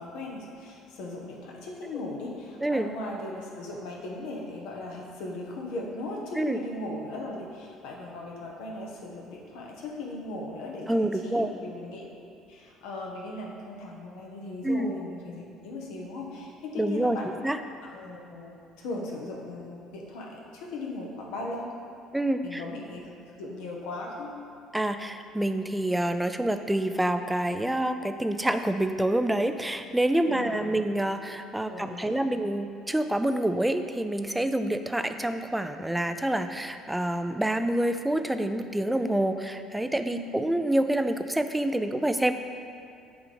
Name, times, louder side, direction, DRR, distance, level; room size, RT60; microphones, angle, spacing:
voice 1, 0.0-12.1 12.5-17.3 17.8-21.7 22.4-23.1 23.4-24.3 30.3-30.8 31.7-32.2 40.1-40.4, left 2 dB, 65° left, -1 dB, 1.1 m, -38 dB
voice 2, 2.6-2.9 6.4-6.6 10.9-11.5 14.6-14.9 16.8-17.2 17.4-17.6 22.1-22.6 24.7-42.3, right 1 dB, 10° right, 8 dB, 0.4 m, -27 dB
7.3 x 3.7 x 5.1 m, 2.6 s
figure-of-eight pair, 55°, 0 cm